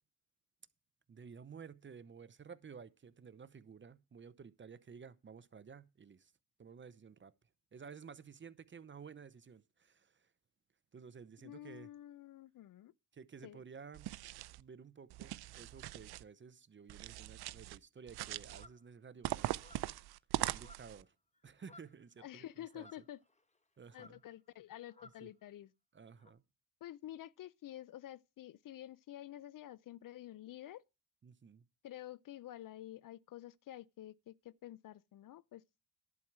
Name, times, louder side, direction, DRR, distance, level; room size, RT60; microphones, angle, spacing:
voice 1, 1.1-6.3 6.6-7.3 7.7-10.3 10.9-11.9 13.1-14.2 14.6-19.6 20.5-21.1 21.4-22.5 22.7-22.9 23.8-24.2 25.2-25.3 25.9-26.4 31.2-31.6, right 6 dB, 30° right, 0.7 m, -53 dB
voice 2, 11.4-12.9 13.4-13.6 22.2-23.2 23.9-25.7 26.8-30.8 31.8-35.6, left 13 dB, 55° left, 0.5 m, -50 dB
sound 1, 13.9-14.6 15.1-16.2 16.9-17.8 18.1-18.7 19.2-21.0, right 16 dB, 70° right, 0.5 m, -41 dB
sound 2, 18.5-18.8 19.5-20.0 20.5-21.1 21.3-22.0 22.7-23.6 23.9-24.3 24.9-25.3 26.2-26.3, left 2 dB, 15° left, 1.2 m, -60 dB
11.0 x 4.6 x 7.3 m
cardioid pair, 85°, 40 cm